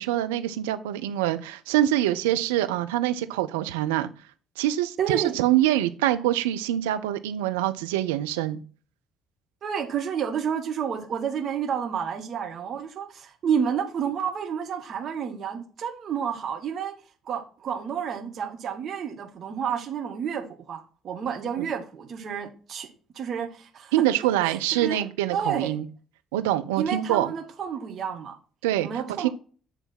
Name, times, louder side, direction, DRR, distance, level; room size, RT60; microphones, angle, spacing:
voice 1, 0.0-4.1 4.6-8.6 21.6-21.7 23.9-25.9 26.3-27.3 28.6-28.9 29.2-29.3, right 13 dB, 70° right, 0.5 m, -25 dB
voice 2, 5.0-5.3 9.6-17.0 17.3-22.9 23.1-23.9 24.4-25.0 25.3-25.7 26.8-28.4 28.8-29.3, right 7 dB, 50° right, 1.3 m, -30 dB
8.2 x 3.4 x 5.8 m
figure-of-eight pair, 50°, 0 cm